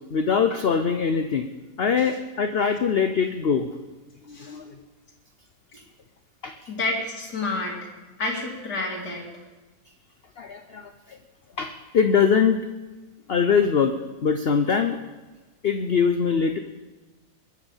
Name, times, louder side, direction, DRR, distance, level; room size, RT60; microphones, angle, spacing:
voice 1, 0.1-1.5 1.8-3.7 4.3-4.8 6.4-6.6 10.4-11.2 11.6-12.6 13.3-13.9 14.2-15.0 15.6-16.6, left 6 dB, 50° left, 8 dB, 0.8 m, -22 dB
voice 2, 6.7-7.8 8.2-9.2, left 2 dB, 75° left, -3 dB, 3.3 m, -29 dB
21.5 x 9.0 x 7.4 m, 1.2 s
omnidirectional pair, 1.8 m